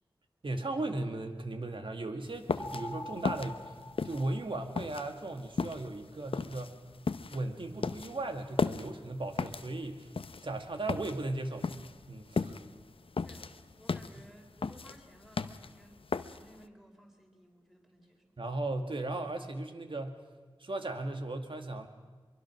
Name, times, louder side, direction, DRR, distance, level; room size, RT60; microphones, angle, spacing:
voice 1, 0.4-3.7 4.0-6.7 7.3-10.1 10.4-11.7 12.1-12.6 18.4-20.2 20.6-21.9, right 2 dB, 70° right, 5 dB, 2.0 m, -36 dB
sound 1, 2.3-16.6, left 4 dB, 80° left, 0.7 m, -36 dB
sound 2, 2.6-5.0, left 1 dB, 30° left, 1.2 m, -44 dB
voice 2, 13.2-18.2, equal, 5° right, 2 dB, 4.5 m, -58 dB
23.5 x 23.0 x 6.2 m, 1.3 s
cardioid pair, 45°, 9 cm